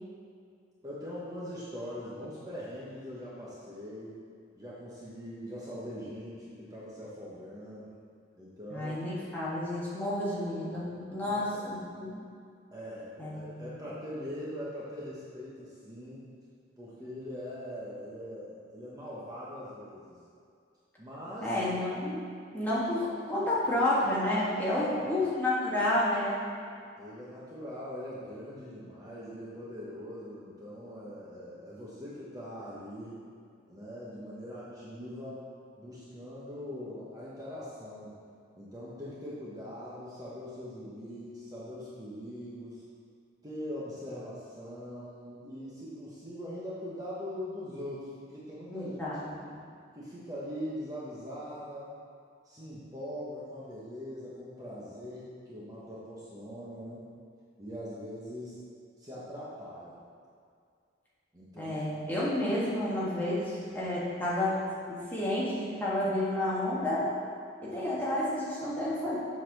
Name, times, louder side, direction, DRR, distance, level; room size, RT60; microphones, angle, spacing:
voice 1, 0.8-4.2 4.6-7.9 8.4-9.0 11.3-11.7 12.7-16.2 16.8-20.2 21.0-21.6 24.7-25.2 26.7-33.2 33.7-35.4 35.8-38.2 38.5-42.8 43.4-49.0 49.3-49.6 49.9-51.9 52.4-57.1 57.6-58.6 59.0-60.0 61.3-61.8, equal, 20° right, -8 dB, 1.1 m, -42 dB
voice 2, 8.7-12.2 13.2-13.7 21.4-22.2 22.5-26.4 48.7-49.2 49.5-49.6 61.6-64.6 65.1-67.1 67.6-69.2, left 1 dB, 10° left, -8 dB, 1.5 m, -30 dB
7.8 x 4.2 x 6.0 m, 2.3 s
head